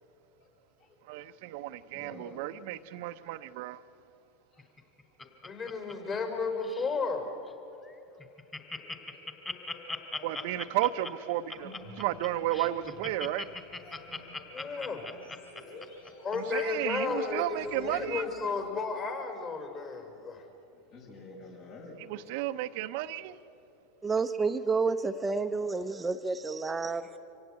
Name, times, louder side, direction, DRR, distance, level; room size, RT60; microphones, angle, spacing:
voice 1, 1.1-3.8 10.2-11.7 12.0-13.5 16.3-18.3 22.1-23.4, right 14 dB, 65° right, 0.8 m, -33 dB
voice 2, 1.9-2.7 4.5-4.7 8.1-8.2 20.7-22.0 22.2-22.3, left 2 dB, 55° left, 6.2 m, -49 dB
Laughter, 4.6-6.4 6.6-7.0 7.5-7.6 7.8-7.9 8.2-16.6 17.1-17.2, left 3 dB, 15° left, 2.9 m, -39 dB
voice 3, 5.4-7.3 8.8-8.9 14.5-15.1 16.2-20.4 24.6-24.7, left 4 dB, 35° left, 5.1 m, -33 dB
sound 1, 11.4-18.1, left 1 dB, 85° left, 5.0 m, -53 dB
voice 4, 24.0-27.0, right 4 dB, 15° right, 0.7 m, -30 dB
25.5 x 17.0 x 9.3 m
hypercardioid pair, 100°, 0 cm